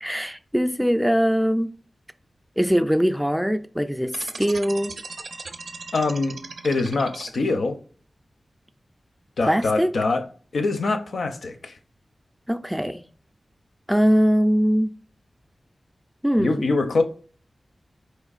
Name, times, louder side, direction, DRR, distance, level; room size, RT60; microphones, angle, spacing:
voice 1, 0.0-1.7 2.6-5.0 9.4-9.9 12.5-13.0 13.9-14.9 16.2-16.7, equal, ahead, 0.3 m, -21 dB
sound 1, 4.1-7.6, right 4 dB, 75° right, 0.5 m, -38 dB
voice 2, 5.9-6.4 6.6-7.8 9.4-10.2 10.5-11.8 16.4-17.0, left 3 dB, 85° left, 0.6 m, -24 dB
4.3 x 3.2 x 2.4 m
wide cardioid pair, 80°, 0 cm